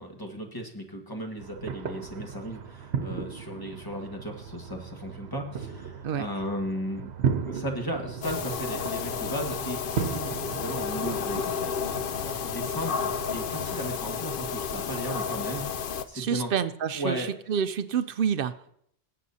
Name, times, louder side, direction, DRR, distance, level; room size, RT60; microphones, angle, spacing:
voice 1, 0.0-7.1 7.5-11.7 12.2-15.6 16.1-16.5 16.9-17.3, equal, 20° left, 1 dB, 1.6 m, -35 dB
sound 1, 1.4-14.0, right 7 dB, 90° right, 1.0 m, -36 dB
sound 2, 8.2-16.0, left 7 dB, 60° left, 0.8 m, -32 dB
voice 2, 16.1-18.5, right 7 dB, 65° right, 12 dB, 0.7 m, -28 dB
19.5 x 8.5 x 2.7 m, 0.67 s
omnidirectional pair, 1.1 m